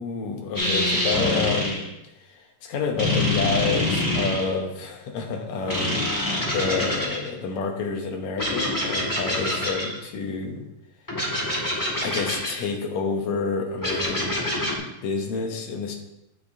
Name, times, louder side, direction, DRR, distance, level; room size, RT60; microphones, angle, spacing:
voice 1, 0.0-1.8 2.2-6.0 6.5-10.6 12.0-14.4 15.0-15.9, left 5 dB, 70° left, 2 dB, 2.3 m, -29 dB
sound 1, 0.5-1.9 3.0-4.5 5.7-7.3 8.4-10.0 11.1-12.6 13.8-14.8, left 1 dB, 10° left, 1.2 m, -25 dB
9.3 x 8.4 x 2.7 m, 0.89 s
omnidirectional pair, 3.5 m